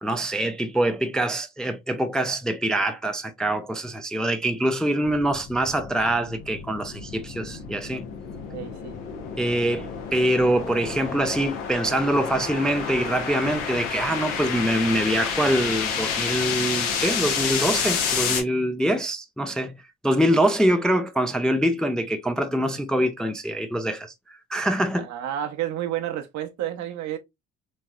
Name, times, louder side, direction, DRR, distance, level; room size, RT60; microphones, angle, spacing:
voice 1, 0.0-8.1 9.4-19.7 20.0-24.1 24.5-25.1, right 1 dB, ahead, 0.4 m, -24 dB
sound 1, 5.0-18.4, left 6 dB, 80° left, 0.9 m, -30 dB
voice 2, 8.3-9.0 24.9-27.2, right 11 dB, 60° right, 0.7 m, -31 dB
3.1 x 2.7 x 2.2 m
hypercardioid pair, 65°, 32 cm